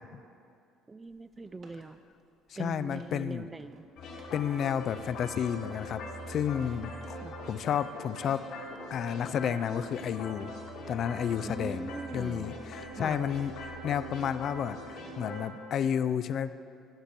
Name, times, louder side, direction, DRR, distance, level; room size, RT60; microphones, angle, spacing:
voice 1, 0.9-2.0 2.6-3.9 7.1-7.3 11.4-12.6 13.0-13.2, right 3 dB, 20° right, 14 dB, 0.3 m, -41 dB
sound 1, 1.0-8.1 8.4-9.8, right 3 dB, 55° right, 1.7 m, -58 dB
voice 2, 2.5-3.5 4.3-6.0 6.3-7.1 7.4-8.5 8.9-10.5 10.9-11.9 12.1-13.5 13.8-14.8 15.2-16.5, left 8 dB, 55° left, 13 dB, 0.4 m, -31 dB
sound 2, 4.0-15.4, left 1 dB, 75° left, 2.1 m, -42 dB
13.5 x 5.2 x 6.0 m, 2.5 s
supercardioid pair, 85°, 0 cm